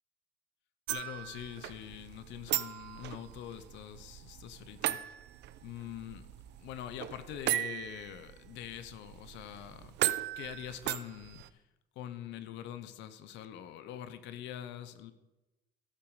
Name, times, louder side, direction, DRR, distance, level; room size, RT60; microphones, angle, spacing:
voice 1, 0.9-5.2 5.6-6.3 6.6-10.0 10.4-11.6 12.0-15.1, left 11 dB, 85° left, 12 dB, 0.8 m, -44 dB
sound 1, 0.9-11.5, right 14 dB, 70° right, 0.5 m, -38 dB
15.5 x 6.1 x 4.9 m, 1.0 s
cardioid pair, 100°, 18 cm